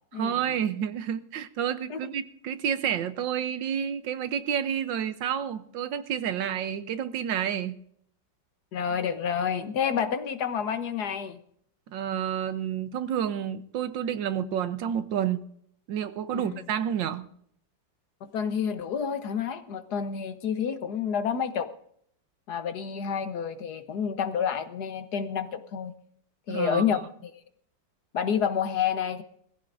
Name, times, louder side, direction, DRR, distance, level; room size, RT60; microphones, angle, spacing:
voice 1, 0.1-7.8 11.9-15.4 15.9-17.3 26.5-27.0, right 9 dB, 85° right, 12 dB, 1.6 m, -30 dB
voice 2, 8.7-11.4 16.3-16.6 18.2-21.7 22.5-25.9 26.5-27.4 28.1-29.2, left 7 dB, 65° left, 9 dB, 1.5 m, -29 dB
21.0 x 15.0 x 2.6 m, 0.67 s
omnidirectional pair, 2.0 m